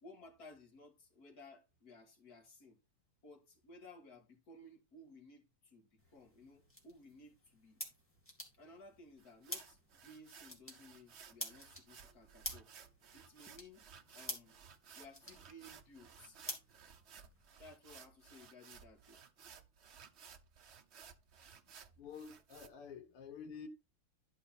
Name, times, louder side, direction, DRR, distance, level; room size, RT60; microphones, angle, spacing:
voice 1, 0.0-2.8 3.2-7.8 8.5-12.7 13.1-14.6 15.0-16.4 17.6-19.2, left 2 dB, 45° left, 2.3 m, -58 dB
sound 1, 6.0-17.5, left 1 dB, 5° left, 2.4 m, -50 dB
sound 2, 9.2-22.7, right 7 dB, 80° right, 0.6 m, -58 dB
voice 2, 22.0-23.7, left 6 dB, 80° left, 2.2 m, -49 dB
12.0 x 5.0 x 4.2 m
omnidirectional pair, 2.4 m